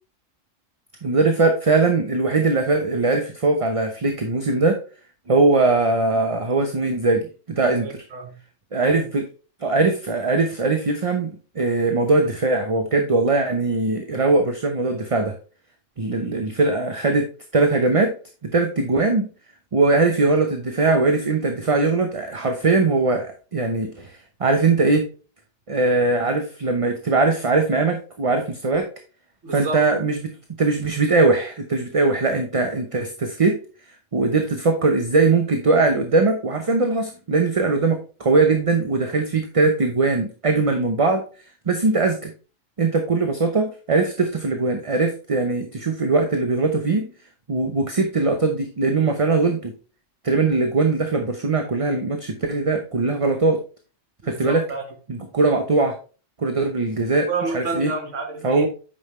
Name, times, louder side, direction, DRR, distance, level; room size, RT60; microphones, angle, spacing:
voice 1, 1.0-4.8 5.3-7.9 8.7-9.3 9.6-15.4 16.0-18.1 18.4-19.3 19.7-25.1 25.7-28.9 29.5-30.3 30.6-33.6 34.1-41.2 41.7-42.3 42.8-47.1 47.5-49.7 50.2-53.6 54.2-54.6 55.1-56.0 56.4-57.3 57.5-57.9 58.4-58.7, right 3 dB, 30° right, 0.8 m, -20 dB
voice 2, 7.7-8.4 8.8-9.1 29.4-29.9 54.2-54.9 57.3-58.7, right 3 dB, 70° right, 1.8 m, -30 dB
8.7 x 5.6 x 3.1 m
omnidirectional pair, 1.3 m